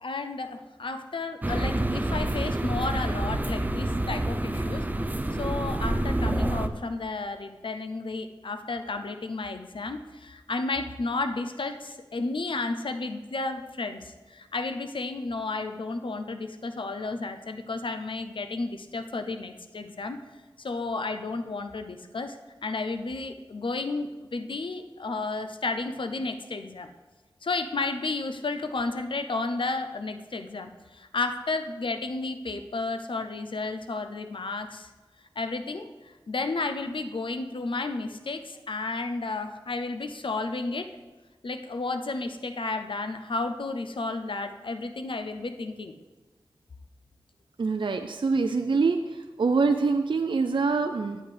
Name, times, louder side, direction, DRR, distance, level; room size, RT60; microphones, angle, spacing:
voice 1, 0.0-4.8 5.4-20.2 20.6-26.9 27.4-34.9 35.4-35.9 36.3-40.9 41.4-45.9, left 3 dB, 70° left, 8 dB, 0.6 m, -32 dB
sound 1, 1.4-6.7, right 1 dB, 20° right, 0.6 m, -28 dB
voice 2, 47.6-49.0 49.4-51.2, right 4 dB, 65° right, 6 dB, 0.5 m, -24 dB
10.0 x 8.5 x 3.4 m, 1.2 s
wide cardioid pair, 60°, 9 cm